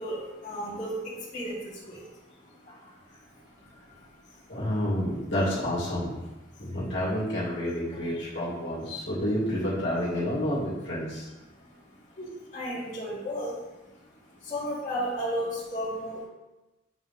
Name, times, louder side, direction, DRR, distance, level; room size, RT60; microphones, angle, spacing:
voice 1, 0.0-2.1 2.4-4.4 6.5-6.8 11.5-13.9 14.3-16.2, equal, 40° left, -10 dB, 2.1 m, -35 dB
voice 2, 4.5-6.2 6.6-11.3, equal, 60° left, -7 dB, 2.5 m, -29 dB
8.1 x 4.2 x 3.6 m, 1.0 s
head